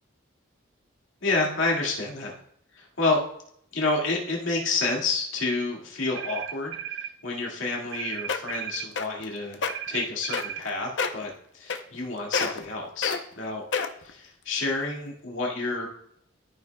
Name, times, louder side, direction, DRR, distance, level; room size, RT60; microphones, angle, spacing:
voice 1, 1.2-2.3 2.7-3.2 3.7-9.6 9.9-13.6 14.0-15.9, left 3 dB, 85° left, -2 dB, 2.0 m, -29 dB
Modern Phone, 6.1-7.1 7.9-8.9 9.7-10.7, right 10 dB, 70° right, 0.5 m, -35 dB
sound 1, 7.9-8.0 8.3-8.6 9.0-9.2 9.5-9.7 10.3-10.7 11.0-11.2 11.7-12.1 12.3-12.7 13.0-13.2 13.7-14.1 14.7-14.8, left 5 dB, 65° left, 0.7 m, -27 dB
13.5 x 5.8 x 2.3 m, 0.68 s
head